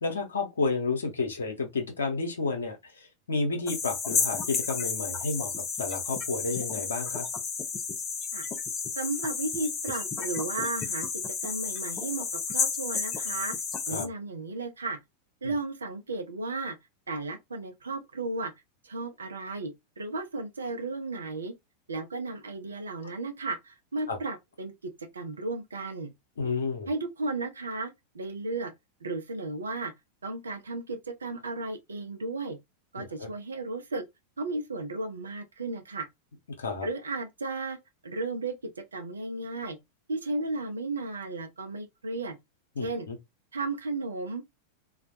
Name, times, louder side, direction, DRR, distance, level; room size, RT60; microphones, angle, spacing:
voice 1, 0.0-5.5 5.8-7.3 13.9-14.1 15.4-15.5 24.1-24.2 26.4-26.9 33.0-33.3 36.6-36.9 42.8-43.2, left 3 dB, 70° left, 0.7 m, -31 dB
sound 1, 3.7-14.1, left 5 dB, 25° left, 0.5 m, -32 dB
voice 2, 9.0-11.1 11.4-12.3 12.5-13.6 13.9-15.0 15.4-16.8 17.1-18.5 18.8-21.5 21.9-26.1 26.9-28.7 29.0-29.9 30.2-32.6 32.9-34.0 34.4-36.1 36.8-37.8 38.0-39.8 40.1-42.4 42.8-43.1 43.5-44.5, right 3 dB, 70° right, 0.5 m, -34 dB
2.2 x 2.1 x 2.7 m
figure-of-eight pair, 90°, 0 cm